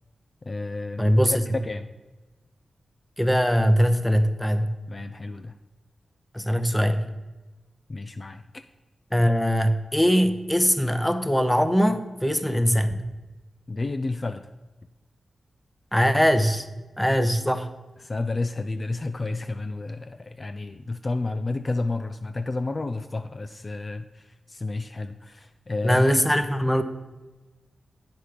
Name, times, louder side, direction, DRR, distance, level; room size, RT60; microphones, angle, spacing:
voice 1, 0.4-1.9 4.9-5.5 7.9-8.6 13.7-14.5 18.0-26.0, left 3 dB, 40° left, 9 dB, 0.4 m, -31 dB
voice 2, 1.0-1.4 3.2-4.8 6.3-7.0 9.1-13.0 15.9-16.7 17.0-17.7 25.8-26.8, equal, 5° left, 10 dB, 0.7 m, -21 dB
8.1 x 6.0 x 5.0 m, 1.2 s
cardioid pair, 55°, 0 cm